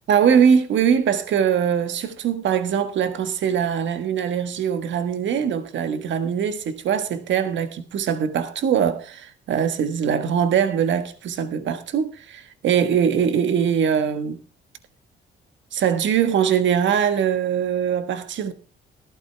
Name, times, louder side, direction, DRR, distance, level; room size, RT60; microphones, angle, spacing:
voice 1, 0.1-14.4 15.7-18.5, right 8 dB, 70° right, 1.5 m, -22 dB
14.0 x 12.5 x 3.4 m
cardioid pair, 90°, 20 cm